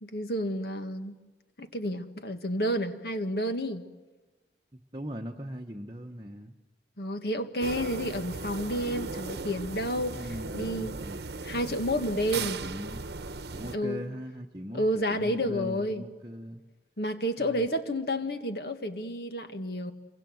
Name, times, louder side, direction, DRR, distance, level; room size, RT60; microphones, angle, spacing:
voice 1, 0.0-1.2 1.6-3.9 7.0-10.2 10.5-10.9 11.4-12.6 13.7-14.0 14.7-16.0 17.0-19.9, equal, 65° left, 7 dB, 1.7 m, -30 dB
voice 2, 4.7-6.5 10.1-11.2 12.3-13.0 13.5-16.6 17.4-17.7, equal, 25° right, 1 dB, 1.0 m, -40 dB
sound 1, 7.6-13.8, right 4 dB, 70° right, 0.9 m, -37 dB
27.0 x 24.0 x 7.8 m, 1.2 s
head